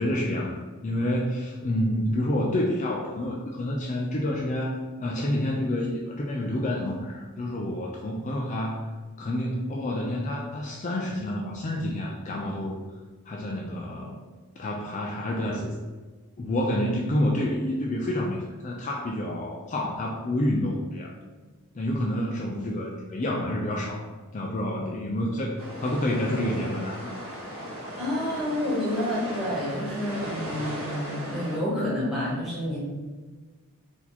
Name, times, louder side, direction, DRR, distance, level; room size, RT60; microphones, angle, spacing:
voice 1, 0.0-8.9 9.2-12.8 13.3-14.2 14.6-15.8 16.4-21.1 21.7-24.1 24.3-27.1, left 1 dB, 35° left, -2 dB, 0.4 m, -28 dB
sound 1, 25.6-31.6, equal, 70° right, 1.3 m, -37 dB
voice 2, 28.0-32.8, left 1 dB, ahead, -8 dB, 1.4 m, -29 dB
4.2 x 2.8 x 4.2 m, 1.3 s
head